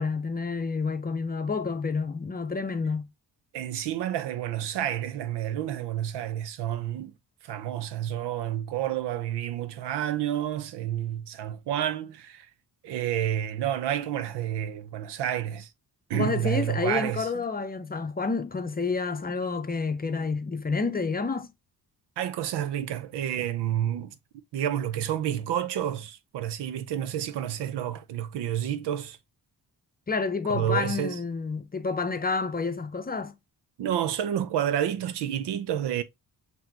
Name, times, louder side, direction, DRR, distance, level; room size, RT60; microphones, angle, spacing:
voice 1, 0.0-3.1 16.1-21.5 30.1-33.3, left 4 dB, 20° left, 0.6 m, -29 dB
voice 2, 3.5-7.1 7.4-12.5 12.8-15.7 16.1-17.3 22.2-24.2 24.5-29.2 30.5-31.2 33.8-36.0, right 11 dB, 85° right, 0.6 m, -29 dB
5.7 x 2.7 x 2.8 m
cardioid pair, 70°, 40 cm